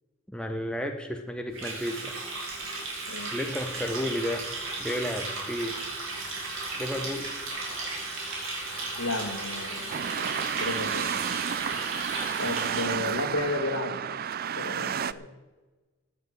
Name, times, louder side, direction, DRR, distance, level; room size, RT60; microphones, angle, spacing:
voice 1, 0.3-2.1 3.3-4.5 4.8-5.8 6.8-7.3, equal, 5° left, 4 dB, 1.0 m, -32 dB
Water tap faucet, 1.5-13.1, right 3 dB, 60° right, 5.2 m, -35 dB
voice 2, 9.0-11.1 12.4-14.0 14.6-15.3, left 2 dB, 85° left, 4 dB, 2.5 m, -33 dB
sound 1, 9.9-15.1, right 8 dB, 40° right, 0.4 m, -31 dB
16.0 x 8.3 x 7.8 m, 1.2 s
head